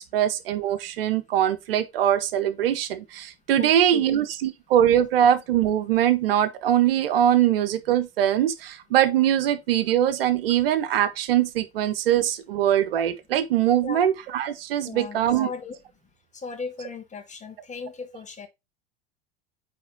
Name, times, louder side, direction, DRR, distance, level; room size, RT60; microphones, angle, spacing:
voice 1, 0.0-15.5, right 11 dB, 70° right, 1.0 m, -22 dB
voice 2, 3.6-4.1 13.8-14.1 14.8-15.8 16.3-18.5, left 5 dB, 25° left, 1.9 m, -37 dB
9.3 x 3.7 x 3.6 m
figure-of-eight pair, 75°, 30 cm